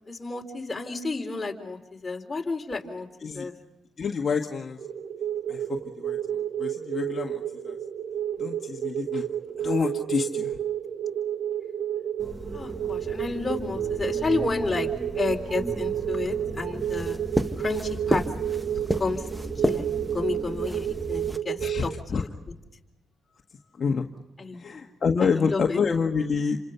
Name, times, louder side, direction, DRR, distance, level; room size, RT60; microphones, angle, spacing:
voice 1, 0.1-3.1 3.3-3.5 12.5-14.9 15.2-17.2 17.6-18.2 19.0-19.2 19.6-19.9 20.1-21.9 22.2-22.3 24.4-24.6 25.2-25.8, left 3 dB, 25° left, 2 dB, 3.8 m, -31 dB
voice 2, 4.0-4.8 5.5-7.8 8.4-9.3 9.6-10.5 21.6-22.2 23.8-24.1 24.6-26.6, left 5 dB, 50° left, 2 dB, 1.6 m, -28 dB
sound 1, 4.8-22.0, right 10 dB, 70° right, 1.0 m, -31 dB
sound 2, 12.2-21.4, right 1 dB, 10° right, 1.5 m, -32 dB
29.0 x 26.0 x 5.7 m, 1.0 s
cardioid pair, 70°, 0 cm